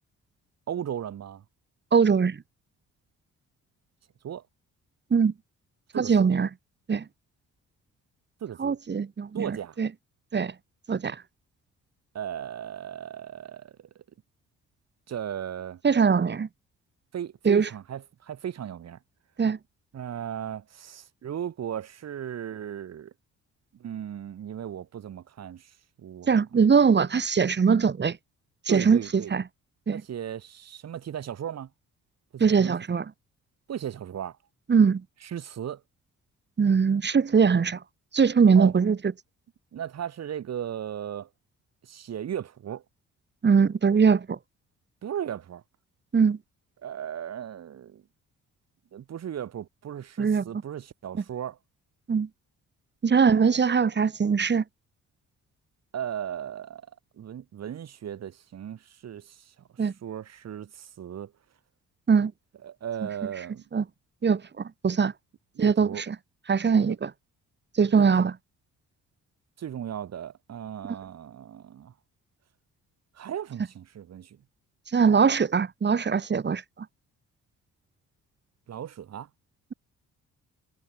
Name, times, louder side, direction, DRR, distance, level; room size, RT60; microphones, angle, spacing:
voice 1, 0.7-1.4 4.2-4.4 5.9-6.3 8.4-8.8 9.3-9.8 12.1-14.0 15.1-15.8 17.1-19.0 19.9-23.1 23.8-26.3 28.7-29.3 29.9-31.7 32.3-32.7 33.7-34.4 35.2-35.8 38.5-38.7 39.7-41.3 41.8-42.8 45.0-45.6 46.8-48.0 48.9-51.6 53.1-53.5 55.9-56.9 57.2-59.5 60.0-61.3 62.6-63.6 65.5-66.0 66.8-67.0 67.9-68.1 69.6-71.9 73.1-74.4 78.7-79.3, right 9 dB, 60° right, 3.1 m, -36 dB
voice 2, 1.9-2.4 5.1-5.3 6.0-6.5 6.9-7.0 8.6-9.9 10.3-10.5 10.9-11.2 15.8-16.5 17.4-17.7 19.4-19.6 26.3-28.2 28.7-29.4 29.9-30.0 32.4-33.0 34.7-35.0 36.6-37.8 38.1-39.0 43.4-44.4 46.1-46.4 50.2-50.4 52.1-52.3 53.0-54.6 59.8-59.9 62.1-62.3 63.7-63.8 64.2-65.1 65.6-66.1 66.5-67.1 67.8-68.3 74.9-76.6, right 6 dB, 35° right, 2.6 m, -21 dB
cardioid pair, 90°, 30 cm